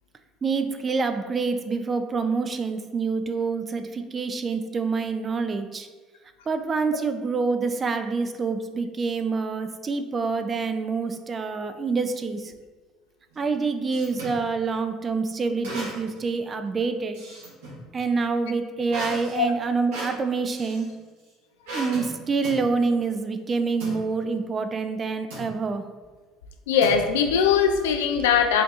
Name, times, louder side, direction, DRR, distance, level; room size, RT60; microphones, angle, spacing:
voice 1, 0.4-5.9 6.5-12.5 13.4-17.2 17.9-20.9 21.7-25.8, right 4 dB, 35° right, 8 dB, 0.4 m, -27 dB
sound 1, 13.3-14.4 15.6-16.2 16.6-17.8 18.9-20.9 21.7-22.1 22.4-22.7 23.8-24.0 25.3-25.6 26.8-27.4, right 1 dB, 85° right, 1.4 m, -36 dB
voice 2, 26.7-28.6, left 7 dB, 85° left, 6 dB, 0.3 m, -20 dB
5.0 x 2.7 x 2.4 m, 1.3 s
hypercardioid pair, 75°, 0 cm